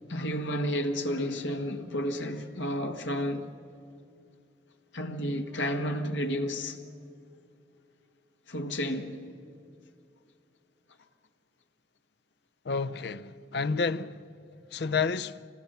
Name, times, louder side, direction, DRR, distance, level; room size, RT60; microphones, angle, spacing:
voice 1, 0.1-3.5 4.9-6.8 8.5-9.3, equal, 80° left, 1.5 m, -31 dB
voice 2, 12.6-14.3 14.7-15.5, left 4 dB, 60° left, 0.5 m, -30 dB
26.0 x 19.0 x 6.8 m
head